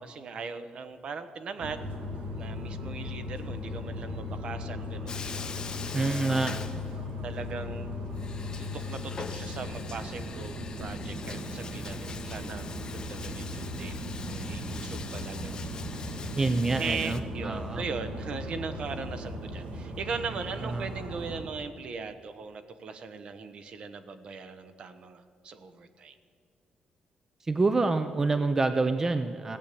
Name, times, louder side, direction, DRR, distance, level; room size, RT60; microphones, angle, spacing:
voice 1, 0.0-2.0 2.4-5.1 5.4-6.5 7.2-8.0 8.6-12.6 12.9-13.9 14.2-16.3 16.8-26.2, right 5 dB, 50° right, 11 dB, 1.0 m, -39 dB
sound 1, 1.6-21.4, left 1 dB, 85° right, 2.3 m, -37 dB
Bathtub (filling or washing), 5.1-7.3 7.6-7.7 8.1-17.2, left 5 dB, 35° left, 0.9 m, -43 dB
voice 2, 5.9-6.8 16.4-17.8 20.6-20.9 27.4-29.6, right 3 dB, 20° right, 10 dB, 0.5 m, -27 dB
16.0 x 8.4 x 8.4 m, 2.4 s
cardioid pair, 140°, 2 cm